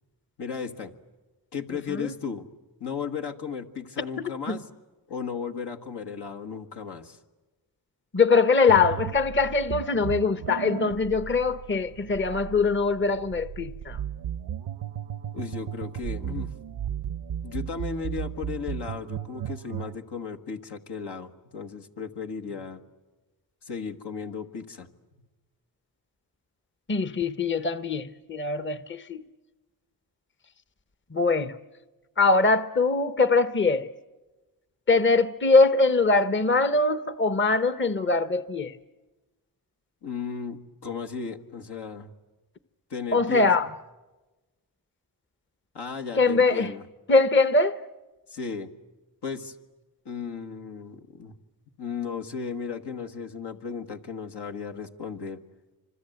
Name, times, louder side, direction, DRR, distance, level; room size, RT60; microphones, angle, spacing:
voice 1, 0.4-0.9 1.5-2.5 2.8-4.7 5.1-7.2 15.3-16.7 17.1-22.8 23.6-24.9 40.0-42.1 42.9-43.6 45.7-46.8 48.3-48.7 49.2-49.6 50.1-51.4 51.8-55.4, left 6 dB, 75° left, 1.8 m, -35 dB
voice 2, 8.1-14.0 26.9-29.2 31.1-31.5 32.2-33.9 34.9-38.7 43.1-43.7 46.2-46.7 47.1-47.8, left 3 dB, 30° left, 0.9 m, -22 dB
sound 1, 8.7-20.0, right 9 dB, 80° right, 0.8 m, -35 dB
28.0 x 25.5 x 8.0 m
cardioid pair, 55°, 41 cm